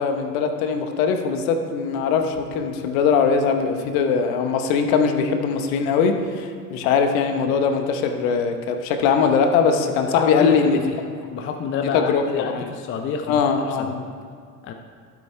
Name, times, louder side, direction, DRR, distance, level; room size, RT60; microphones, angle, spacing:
voice 1, 0.0-10.8 11.8-12.7 13.3-14.0, left 6 dB, 55° left, 6 dB, 1.1 m, -21 dB
voice 2, 10.1-11.0 11.3-13.9 14.6-14.7, left 6 dB, 25° left, 5 dB, 0.6 m, -28 dB
13.0 x 12.0 x 2.2 m, 2.1 s
figure-of-eight pair, 75°, 49 cm